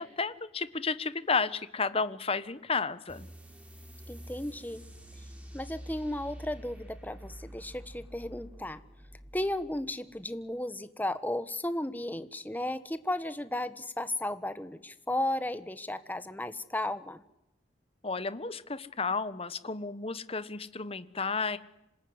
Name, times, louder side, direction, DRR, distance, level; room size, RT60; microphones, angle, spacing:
voice 1, 0.0-3.3 18.0-21.6, left 4 dB, 30° left, 14 dB, 1.2 m, -32 dB
sound 1, 3.1-10.2, equal, 10° right, 4.9 m, -48 dB
voice 2, 4.1-4.8 5.5-8.8 9.3-17.2, left 1 dB, 10° left, 12 dB, 1.2 m, -34 dB
26.5 x 19.5 x 9.7 m, 0.87 s
head